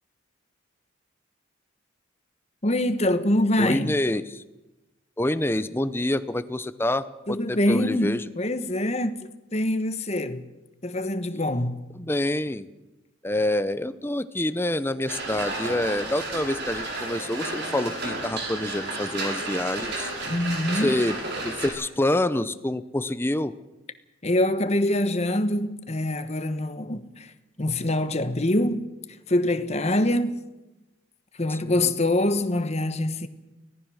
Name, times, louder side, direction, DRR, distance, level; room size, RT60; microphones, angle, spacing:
voice 1, 2.6-4.0 7.3-10.4 10.8-11.8 20.3-20.9 24.2-27.3 27.6-28.8 29.3-30.4 31.4-33.3, left 1 dB, 30° left, 1.2 m, -24 dB
voice 2, 3.6-4.4 5.2-8.2 12.0-12.7 13.2-20.1 20.7-21.2 21.4-23.5 31.5-31.9, left 1 dB, 10° left, 0.7 m, -27 dB
sound 1, 15.1-21.7, right 2 dB, 55° right, 6.1 m, -32 dB
24.5 x 18.0 x 6.4 m
head